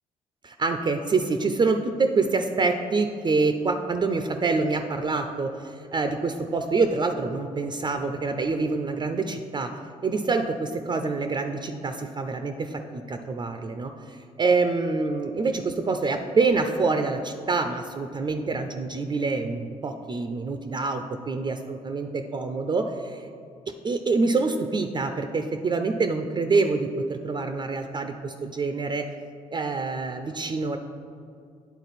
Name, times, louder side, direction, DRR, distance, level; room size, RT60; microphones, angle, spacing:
voice 1, 0.4-9.7 10.0-23.3 23.7-29.1 29.5-30.8, right 3 dB, 30° right, 6 dB, 0.4 m, -26 dB
9.1 x 3.8 x 4.1 m, 2.3 s
supercardioid pair, 65°, 15 cm